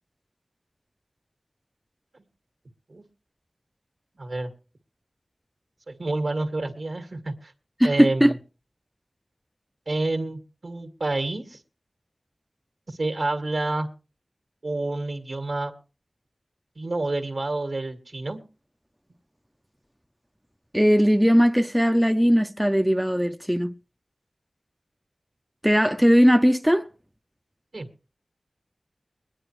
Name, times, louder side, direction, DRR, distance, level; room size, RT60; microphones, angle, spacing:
voice 1, 4.2-4.5 5.9-7.5 7.8-8.4 9.9-11.6 12.9-13.9 14.6-15.7 16.7-18.4 27.7-27.9, right 2 dB, 70° right, 1.8 m, -28 dB
voice 2, 7.8-8.3 20.7-23.8 25.6-26.9, equal, 5° right, 0.6 m, -19 dB
22.0 x 10.0 x 3.1 m
wide cardioid pair, 40°, 0 cm